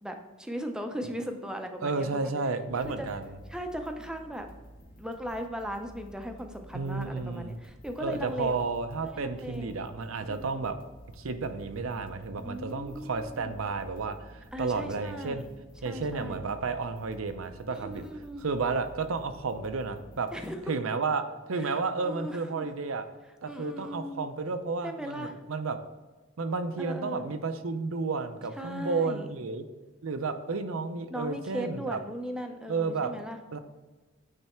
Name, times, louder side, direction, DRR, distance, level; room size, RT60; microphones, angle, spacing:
voice 1, 0.0-2.3 2.8-3.1 3.5-4.5 5.0-8.6 9.0-9.8 10.3-10.7 12.4-13.7 14.5-15.5 15.8-16.4 17.7-18.4 20.3-20.6 21.6-22.7 23.4-24.3 24.8-25.4 26.8-27.2 28.6-29.3 31.1-33.4, equal, 5° right, 5 dB, 0.6 m, -38 dB
voice 2, 1.8-3.3 6.7-7.5 8.0-10.8 11.2-15.5 15.8-18.0 18.4-20.3 20.7-23.0 23.4-25.8 26.4-29.7 30.0-32.0 32.7-33.1 33.5-33.6, right 4 dB, 75° right, 9 dB, 0.6 m, -32 dB
sound 1, 2.7-20.5, right 1 dB, 40° left, 1.0 m, -51 dB
9.0 x 3.3 x 4.4 m, 1.3 s
head